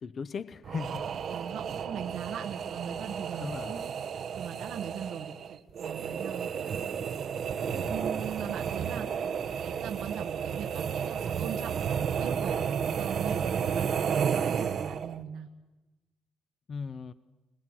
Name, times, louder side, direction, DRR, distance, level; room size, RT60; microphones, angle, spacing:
voice 1, 0.0-1.1 3.4-3.8 7.6-8.0 16.7-17.1, left 5 dB, 50° left, 14 dB, 0.7 m, -38 dB
sound 1, 0.6-15.2, right 7 dB, 60° right, 0.9 m, -32 dB
voice 2, 1.3-3.8 4.3-6.8 7.9-9.1 9.6-15.5, right 8 dB, 85° right, 2 dB, 1.3 m, -40 dB
21.0 x 20.0 x 8.9 m, 1.1 s
cardioid pair, 90°, 0 cm